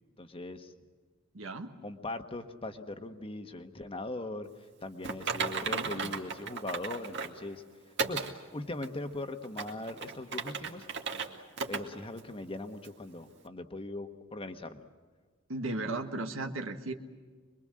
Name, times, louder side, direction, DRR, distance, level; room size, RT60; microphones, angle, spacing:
voice 1, 0.2-0.7 1.8-4.5 4.8-7.6 8.1-8.2 8.5-10.8 11.7-14.8, left 2 dB, 25° left, 7 dB, 1.4 m, -40 dB
voice 2, 1.3-1.7 5.7-6.1 15.5-16.9, right 2 dB, 75° right, 5 dB, 1.6 m, -36 dB
Typing, 5.0-7.4 8.0-8.3 8.8-8.9 9.4-11.3 11.6-11.8 12.2-12.3 12.8-12.9, right 5 dB, 60° right, 2.3 m, -35 dB
25.5 x 22.5 x 7.7 m, 1.5 s
head